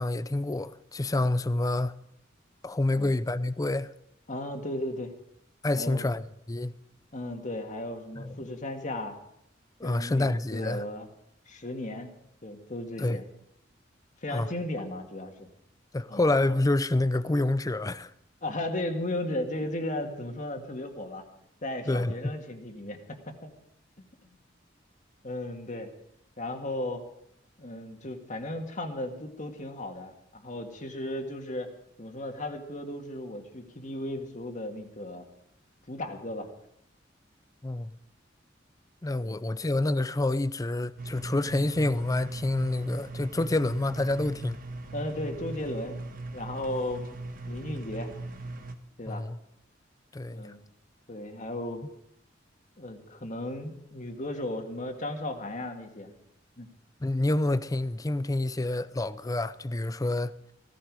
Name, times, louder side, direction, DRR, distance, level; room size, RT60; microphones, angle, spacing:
voice 1, 0.0-2.0 2.6-3.9 5.6-6.8 8.2-8.4 9.8-10.8 13.0-13.2 14.3-14.5 15.9-18.1 21.9-22.1 37.6-38.0 39.0-44.6 49.1-49.4 50.1-50.5 57.0-60.3, left 2 dB, 20° left, 0.5 m, -28 dB
voice 2, 4.3-5.1 5.7-6.1 7.1-9.2 9.8-11.1 11.5-12.1 12.4-13.2 14.2-15.5 16.1-16.3 18.4-21.3 21.6-23.5 25.2-25.9 26.4-27.0 27.6-31.7 32.0-35.3 35.9-36.5 39.2-39.5 44.9-46.0 46.3-47.0 47.5-48.1 49.0-49.2 50.3-50.6 51.1-51.8 52.8-56.1 56.6-56.7, left 1 dB, 40° left, 1.9 m, -35 dB
sound 1, 41.0-48.8, right 2 dB, 50° right, 1.4 m, -39 dB
16.0 x 15.0 x 4.9 m
head